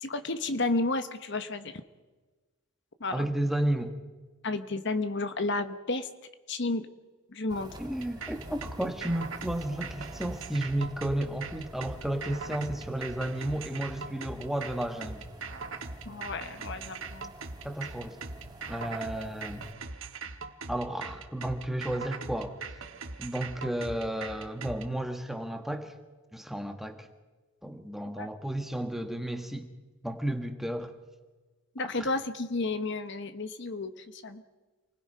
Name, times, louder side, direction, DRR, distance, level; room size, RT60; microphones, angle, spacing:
voice 1, 0.0-1.8 3.0-3.2 4.4-6.1 6.5-6.9 7.3-7.7 16.0-17.3 28.2-28.3 31.7-34.4, left 2 dB, 55° left, 10 dB, 1.1 m, -32 dB
voice 2, 3.1-3.9 7.8-15.3 17.6-18.2 18.7-19.7 20.7-22.8 23.2-25.9 26.3-27.1 27.6-29.7 30.0-30.9 32.0-32.1, right 1 dB, ahead, 5 dB, 1.5 m, -33 dB
sound 1, 7.5-19.7, right 1 dB, 20° right, 1.8 m, -48 dB
sound 2, 8.0-24.8, right 4 dB, 65° right, 1.6 m, -41 dB
28.5 x 20.0 x 5.6 m, 1.3 s
head